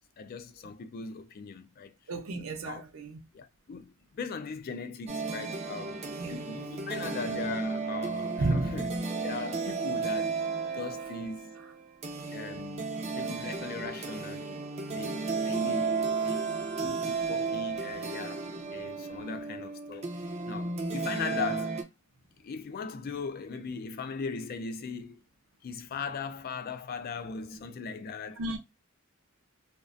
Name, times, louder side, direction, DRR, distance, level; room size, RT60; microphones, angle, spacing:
voice 1, 0.2-1.9 2.6-2.8 3.3-6.0 6.3-8.9 9.2-10.4 10.7-11.5 12.3-12.9 13.1-14.6 14.9-20.1 20.5-21.8 22.4-25.2 25.6-28.4, left 5 dB, 45° left, 0.3 m, -39 dB
voice 2, 2.1-3.2 6.2-6.5 8.4-8.9 11.6-11.7 18.9-19.3 28.4-28.6, right 2 dB, 85° right, 0.5 m, -33 dB
sound 1, 5.1-21.8, right 4 dB, 30° right, 0.4 m, -34 dB
2.3 x 2.1 x 2.5 m
head